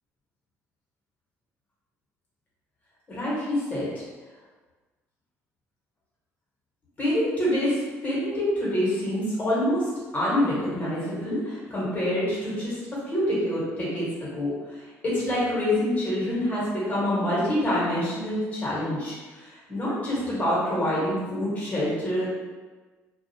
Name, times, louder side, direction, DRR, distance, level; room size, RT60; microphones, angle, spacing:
voice 1, 3.1-3.9 7.0-14.1 14.3-22.3, left 1 dB, 25° left, -8 dB, 1.2 m, -26 dB
2.4 x 2.3 x 2.7 m, 1.3 s
cardioid pair, 130°, 6 cm